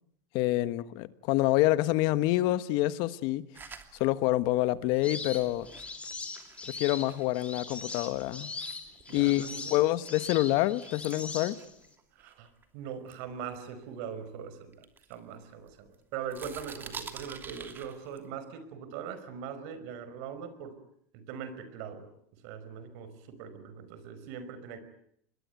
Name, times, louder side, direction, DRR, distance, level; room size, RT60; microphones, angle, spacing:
voice 1, 0.3-3.4 4.0-5.7 6.7-8.5 9.1-11.6, left 17 dB, 60° left, 1.3 m, -27 dB
sound 1, 3.5-8.1 8.5-12.6 13.1-14.3 14.7-15.9 16.2-18.3, right 6 dB, 20° right, 2.8 m, -49 dB
sound 2, 5.0-11.9, left 3 dB, 15° left, 3.8 m, -41 dB
voice 2, 9.1-9.8 12.1-20.8 21.1-22.1 22.4-24.8, right 7 dB, 65° right, 5.3 m, -41 dB
26.5 x 21.5 x 9.3 m
supercardioid pair, 130°, 9 cm